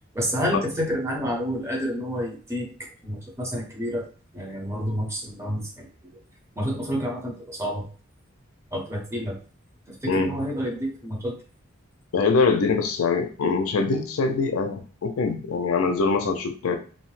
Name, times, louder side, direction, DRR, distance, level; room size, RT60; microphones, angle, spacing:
voice 1, 0.1-4.1 4.3-5.9 6.6-7.9 8.7-9.4 9.9-11.4, equal, 15° right, -1 dB, 0.7 m, -29 dB
voice 2, 12.1-16.8, left 4 dB, 80° left, 6 dB, 0.4 m, -23 dB
2.6 x 2.1 x 3.1 m, 0.40 s
head